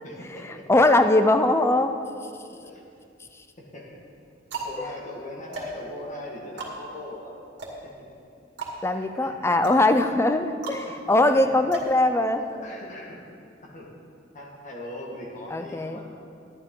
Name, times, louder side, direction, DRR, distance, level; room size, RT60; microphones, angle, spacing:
voice 1, 0.0-0.8 2.6-2.8 3.6-4.0 4.6-7.4 7.8-8.1 8.9-9.6 10.8-11.6 12.5-13.2 13.6-13.9 14.3-16.1, left 1 dB, 45° left, -2 dB, 1.7 m, -40 dB
voice 2, 0.7-1.9 4.8-4.9 8.8-12.4 15.5-16.0, left 2 dB, 15° left, 8 dB, 0.5 m, -21 dB
sound 1, 2.6-3.3 3.9-12.7, right 2 dB, 70° right, 2.1 m, -39 dB
12.5 x 10.5 x 3.8 m, 2.4 s
head